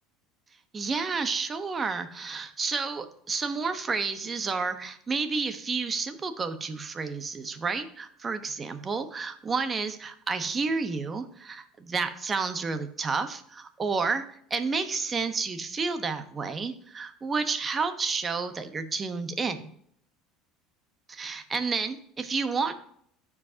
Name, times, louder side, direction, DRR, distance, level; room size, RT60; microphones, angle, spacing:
voice 1, 0.7-14.2 14.5-19.7 21.1-22.7, right 4 dB, 25° right, 8 dB, 1.1 m, -30 dB
14.0 x 4.9 x 2.8 m, 0.67 s
supercardioid pair, 100°, 0 cm